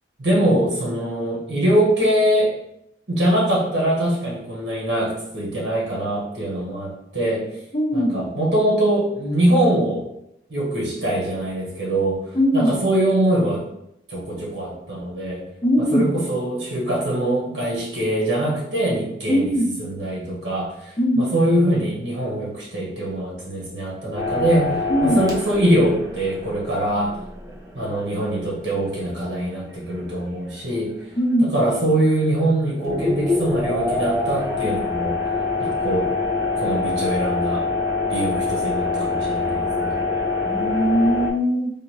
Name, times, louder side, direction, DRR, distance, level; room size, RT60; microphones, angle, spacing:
voice 1, 0.2-2.5 3.1-7.5 7.9-10.0 10.5-12.2 12.5-13.6 14.1-15.4 15.9-19.5 19.8-27.2 27.7-30.9 31.4-35.2 35.6-36.1 36.5-37.6 38.1-40.0, right 1 dB, 80° right, -5 dB, 1.5 m, -23 dB
voice 2, 7.7-8.3 12.3-12.8 15.6-16.1 19.3-19.7 21.0-21.3 24.9-25.3 31.2-31.5 40.4-41.7, equal, 30° left, 1 dB, 0.4 m, -20 dB
sound 1, 24.1-30.1 30.5-30.6 32.0-32.4 32.8-41.3, left 3 dB, 20° right, 0.6 m, -25 dB
3.6 x 2.6 x 3.0 m, 0.79 s
head